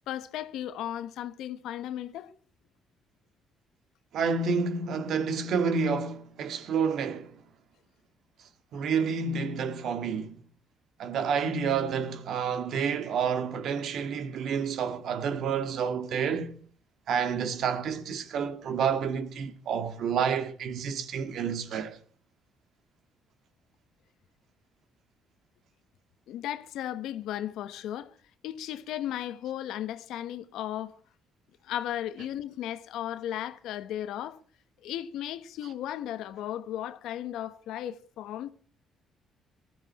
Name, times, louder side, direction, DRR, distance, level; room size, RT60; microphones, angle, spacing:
voice 1, 0.1-2.3 26.3-28.2 28.4-31.0 31.6-34.4 34.8-38.5, left 11 dB, 80° left, 1.2 m, -35 dB
voice 2, 4.1-7.3 8.7-10.3 11.0-16.6 17.1-22.0, right 6 dB, 65° right, 2.0 m, -29 dB
19.0 x 14.0 x 4.2 m
cardioid pair, 105°, 0 cm